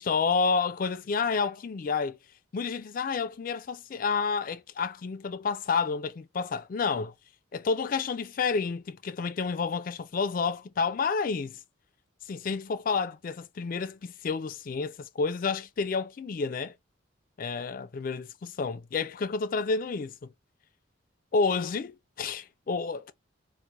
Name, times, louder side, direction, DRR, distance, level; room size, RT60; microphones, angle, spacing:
voice 1, 0.0-2.2 2.5-7.1 7.5-11.6 12.3-16.7 17.4-20.3 21.3-23.1, left 5 dB, 45° left, 0.3 m, -30 dB
4.4 x 2.0 x 2.4 m
head